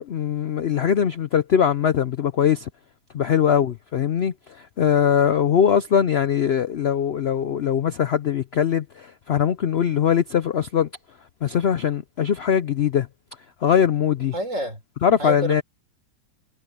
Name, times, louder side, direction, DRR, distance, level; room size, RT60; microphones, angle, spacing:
voice 1, 0.0-2.7 3.1-10.9 11.4-13.1 13.6-14.3 15.0-15.6, left 8 dB, 90° left, 0.5 m, -21 dB
voice 2, 14.3-14.8 15.2-15.6, right 1 dB, 45° right, 5.8 m, -29 dB
omnidirectional pair, 1.9 m